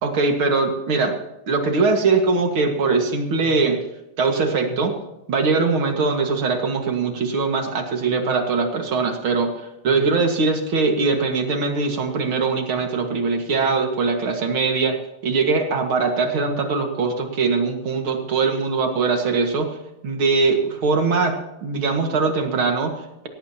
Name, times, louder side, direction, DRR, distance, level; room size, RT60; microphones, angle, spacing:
voice 1, 0.0-1.2 1.5-3.8 4.2-4.9 5.3-19.8 20.0-21.4 21.6-23.3, right 4 dB, 80° right, 4 dB, 2.8 m, -21 dB
18.0 x 16.0 x 2.9 m, 0.93 s
omnidirectional pair, 2.2 m